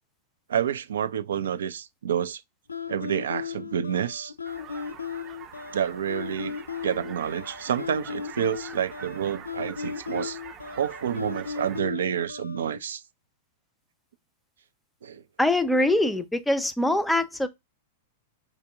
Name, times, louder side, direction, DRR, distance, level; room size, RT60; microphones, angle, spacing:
voice 1, 0.5-2.4 2.9-4.3 5.7-6.6 6.8-10.4 10.8-13.0 15.0-15.2, right 8 dB, 65° right, 0.4 m, -29 dB
sound 1, 2.7-12.8, left 6 dB, 80° left, 0.4 m, -36 dB
sound 2, 4.4-11.8, right 8 dB, 30° right, 0.7 m, -45 dB
voice 2, 15.4-17.5, left 1 dB, 5° left, 0.5 m, -23 dB
5.0 x 2.7 x 3.3 m
figure-of-eight pair, 95°, 0 cm